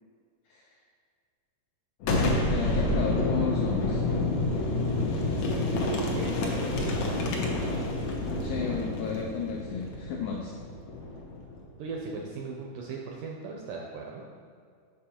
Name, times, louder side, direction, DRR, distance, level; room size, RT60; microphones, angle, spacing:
Boom, 2.0-11.6, left 2 dB, 70° left, 1.7 m, -29 dB
voice 1, 2.4-4.1 8.4-10.5, left 5 dB, 85° left, -1 dB, 1.8 m, -33 dB
voice 2, 5.4-7.9 11.8-14.2, right 4 dB, 80° right, -1 dB, 1.9 m, -37 dB
7.3 x 6.2 x 4.3 m, 2.2 s
omnidirectional pair, 4.5 m